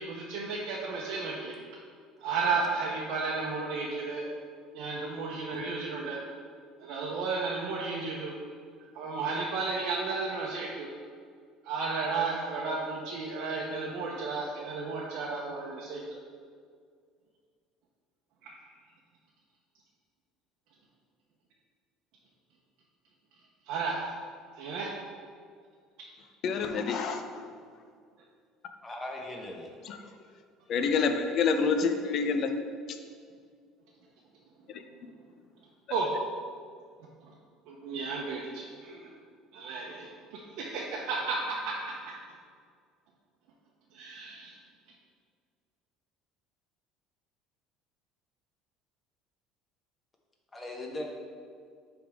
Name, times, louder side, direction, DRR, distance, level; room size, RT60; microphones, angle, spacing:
voice 1, 0.0-1.5 2.2-4.2 4.7-6.2 6.8-8.3 8.9-10.9 11.6-16.2 18.4-18.6 23.7-24.1 24.6-24.9 35.9-36.1 37.7-39.1 39.5-41.7 43.9-44.6, right 4 dB, 75° right, -4 dB, 0.8 m, -33 dB
voice 2, 26.4-27.5 29.8-30.0 30.7-32.5 32.9-33.0 34.7-34.8, left 5 dB, 50° left, 7 dB, 0.6 m, -28 dB
voice 3, 28.8-29.7 50.5-51.0, left 1 dB, 15° left, 0 dB, 1.0 m, -38 dB
9.9 x 3.5 x 3.5 m, 2.1 s
cardioid pair, 140°, 0 cm